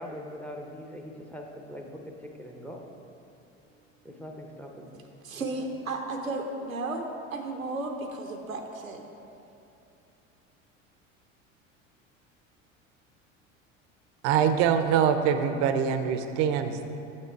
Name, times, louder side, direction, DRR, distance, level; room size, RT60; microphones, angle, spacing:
voice 1, 0.0-2.9 4.0-5.2 5.5-5.6, equal, 5° left, 2 dB, 0.6 m, -42 dB
voice 2, 5.2-9.0, right 2 dB, 85° right, 3 dB, 0.7 m, -34 dB
voice 3, 14.2-16.9, right 8 dB, 45° right, 9 dB, 0.5 m, -24 dB
7.5 x 5.9 x 4.5 m, 2.8 s
figure-of-eight pair, 70°, 40 cm